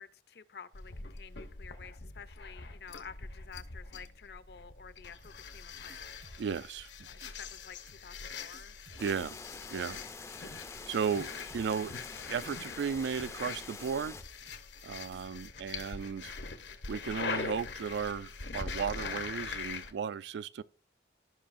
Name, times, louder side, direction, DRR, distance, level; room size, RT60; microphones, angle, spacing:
voice 1, 0.0-6.1 7.1-8.8, left 6 dB, 65° left, 0.5 m, -51 dB
sound 1, 0.7-19.9, left 4 dB, 85° left, 0.9 m, -43 dB
sound 2, 5.2-5.6 5.9-6.9 7.2-7.6 7.9-8.2 8.5-9.6 9.8-10.2 10.5-10.9 11.2-12.2 12.5-12.9 13.1-13.5 13.8-14.8 15.1-15.5, right 3 dB, 60° right, 1.0 m, -57 dB
voice 2, 6.4-6.9 9.0-9.4 9.7-10.0 10.9-11.3 11.5-11.9 12.2-14.2 14.8-16.4 16.9-20.6, right 6 dB, 75° right, 0.3 m, -35 dB
sound 3, 9.0-14.2, left 4 dB, 15° left, 0.4 m, -47 dB
15.5 x 5.5 x 2.5 m
head